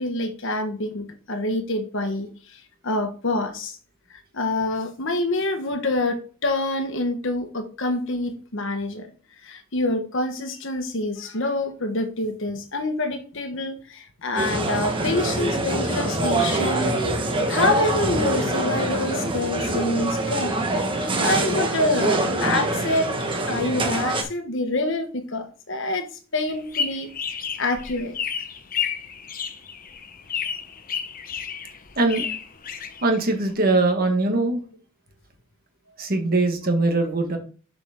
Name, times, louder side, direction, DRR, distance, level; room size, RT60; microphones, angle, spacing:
voice 1, 0.0-3.8 4.1-9.1 9.4-20.9 21.2-23.1 23.5-26.0 26.3-28.2, left 2 dB, 60° left, 7 dB, 1.3 m, -26 dB
sound 1, 14.4-24.2, right 2 dB, 25° right, 1.2 m, -24 dB
sound 2, 26.5-33.5, left 7 dB, 40° left, 0.8 m, -31 dB
voice 2, 32.0-32.3 33.0-34.6 36.0-37.4, right 2 dB, 40° right, 5 dB, 1.6 m, -21 dB
7.1 x 6.0 x 3.6 m, 0.39 s
head